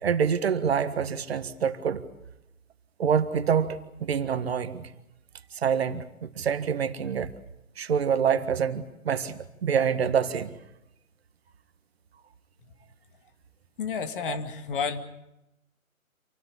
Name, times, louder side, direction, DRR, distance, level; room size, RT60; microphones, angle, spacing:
voice 1, 0.0-2.0 3.0-4.9 5.6-7.3 7.8-10.5 14.3-14.4, right 7 dB, 45° right, 11 dB, 1.7 m, -26 dB
voice 2, 13.8-15.0, left 5 dB, 40° left, 8 dB, 2.3 m, -30 dB
27.5 x 18.5 x 8.4 m, 0.89 s
figure-of-eight pair, 140°, 42 cm